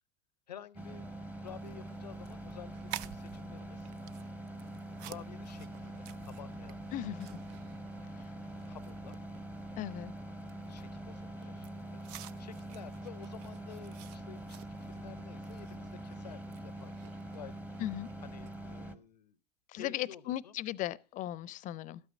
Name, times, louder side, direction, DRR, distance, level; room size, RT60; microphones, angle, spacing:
voice 1, 0.5-3.9 5.0-7.7 8.6-9.2 10.7-17.0 17.3-17.8 18.2-19.4 19.7-20.5, left 8 dB, 80° left, 0.7 m, -52 dB
sound 1, 0.8-19.0, right 1 dB, 5° right, 0.9 m, -44 dB
sound 2, 1.4-18.7, right 13 dB, 50° right, 0.5 m, -53 dB
voice 2, 6.9-7.4 9.8-10.1 17.8-18.1 19.7-22.0, left 13 dB, 40° left, 0.6 m, -37 dB
12.5 x 8.9 x 3.7 m
figure-of-eight pair, 80°, 21 cm